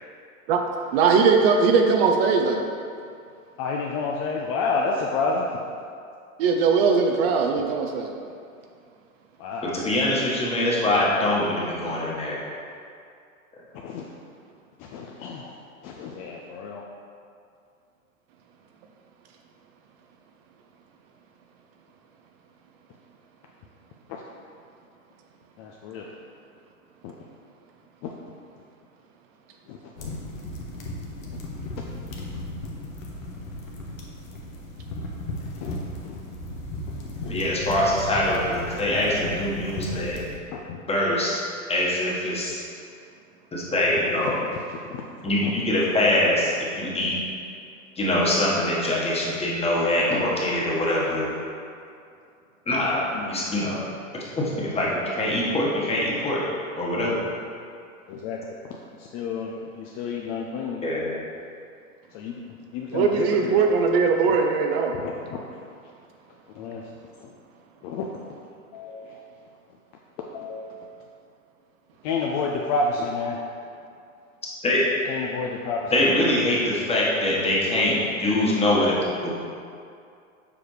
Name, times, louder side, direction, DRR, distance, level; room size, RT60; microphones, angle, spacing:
voice 1, 0.9-2.6 6.4-8.2 62.9-64.9, right 5 dB, 45° right, 3 dB, 0.6 m, -20 dB
voice 2, 3.6-5.5 9.4-9.8 11.8-11.9 13.8-14.1 14.8-15.6 15.8-16.9 24.1-24.2 25.6-26.1 27.0-27.1 28.0-28.1 29.7-30.1 35.6-35.7 36.0-36.2 37.2-37.3 40.5-40.8 44.4-45.5 53.1-53.7 58.1-58.4 59.0-60.8 62.1-62.4 62.7-63.6 64.9-65.6 66.5-66.8 67.2-67.3 67.8-68.1 68.7-69.2 70.2-71.0 72.0-73.4 75.1-75.9, left 4 dB, 35° left, -1 dB, 0.5 m, -30 dB
voice 3, 9.6-12.4 37.3-40.2 40.9-41.4 41.7-42.6 43.5-44.4 45.2-47.2 48.0-51.3 52.7-53.8 54.4-56.4 56.8-57.3 60.8-61.1 74.6-74.8 75.9-78.9 79.2-79.3, left 1 dB, 15° left, -5 dB, 1.4 m, -23 dB
sound 1, 30.0-40.4, left 1 dB, 70° left, 1.2 m, -35 dB
7.0 x 4.8 x 3.2 m, 2.4 s
hypercardioid pair, 100°, 42 cm